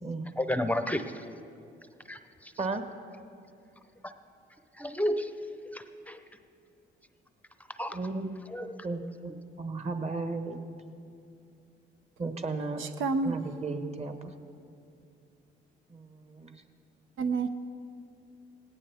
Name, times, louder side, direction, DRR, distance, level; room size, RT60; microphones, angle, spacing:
voice 1, 0.4-1.2 2.1-2.2 2.6-2.7 4.0-4.1 4.8-5.3 5.7-6.2 7.8-8.0 8.5-8.8, left 1 dB, 5° left, 9 dB, 0.6 m, -31 dB
voice 2, 7.9-9.3 9.6-10.6 12.2-12.8 13.2-14.3 15.9-16.6, right 3 dB, 35° right, 7 dB, 1.3 m, -35 dB
voice 3, 12.8-13.4 17.2-17.5, right 4 dB, 85° right, 8 dB, 0.8 m, -29 dB
18.5 x 17.5 x 3.5 m, 2.5 s
cardioid pair, 90°, 20 cm